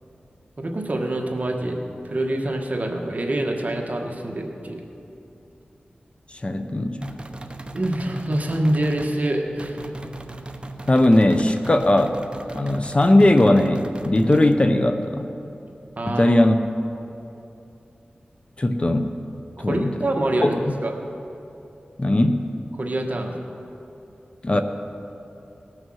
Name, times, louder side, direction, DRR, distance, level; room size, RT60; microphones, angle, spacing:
voice 1, 0.6-1.8 2.1-4.8 7.7-9.8 16.0-16.3 19.6-20.5 20.8-20.9 22.8-23.4, right 1 dB, 45° right, 2 dB, 1.4 m, -25 dB
voice 2, 6.3-7.1 10.9-12.2 12.5-15.3 16.1-16.6 18.6-19.1 19.6-19.9 20.4-20.6 22.0-22.5 24.4-24.6, left 1 dB, 35° left, 7 dB, 0.7 m, -19 dB
sound 1, 7.0-9.2 9.6-14.6, right 2 dB, 30° right, 0.8 m, -38 dB
18.5 x 6.4 x 6.3 m, 2.8 s
wide cardioid pair, 60°, 3 cm